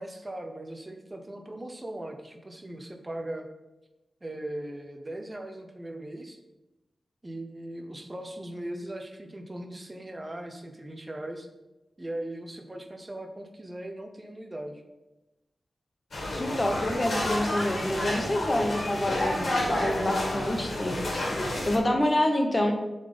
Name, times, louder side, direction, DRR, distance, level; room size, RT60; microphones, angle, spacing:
voice 1, 0.0-3.5 4.2-6.4 7.2-11.5 12.0-14.8, right 1 dB, 20° right, 5 dB, 0.8 m, -39 dB
sound 1, 16.1-21.8, left 1 dB, 60° left, 2.1 m, -30 dB
voice 2, 16.3-21.0 21.7-22.7, left 1 dB, 25° left, 3 dB, 1.0 m, -27 dB
7.0 x 4.1 x 5.2 m, 1.0 s
wide cardioid pair, 140°, 0 cm